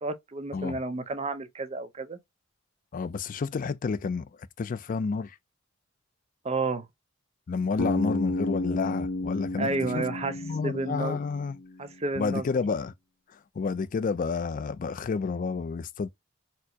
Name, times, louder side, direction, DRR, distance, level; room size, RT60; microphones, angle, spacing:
voice 1, 0.0-2.2 6.4-6.9 9.6-10.4 10.6-11.2 11.8-12.4, right 3 dB, 30° right, 0.6 m, -31 dB
voice 2, 2.9-4.3 4.6-5.4 7.5-10.0 10.4-11.6 12.2-12.9 13.3-16.1, left 4 dB, 40° left, 0.3 m, -30 dB
Bass guitar, 7.8-11.9, left 2 dB, 85° left, 1.0 m, -32 dB
4.4 x 2.0 x 2.7 m
head